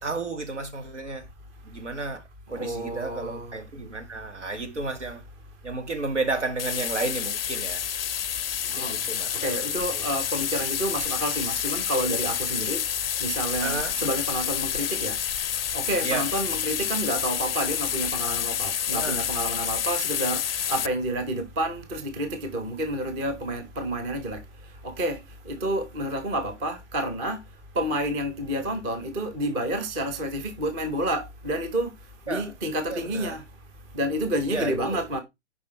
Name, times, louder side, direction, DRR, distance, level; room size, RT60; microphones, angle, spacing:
voice 1, 0.0-1.3 1.6-2.2 2.5-5.2 5.6-7.9 8.8-10.1 13.6-14.0 16.0-16.3 18.9-19.2 32.3-32.5 32.9-33.4 34.5-35.0, right 3 dB, 80° right, 2.2 m, -32 dB
voice 2, 2.5-3.6 8.1-35.2, right 1 dB, 10° right, 0.6 m, -30 dB
sound 1, 6.6-20.9, left 9 dB, 55° left, 0.4 m, -29 dB
7.1 x 5.1 x 4.4 m
figure-of-eight pair, 140°, 35 cm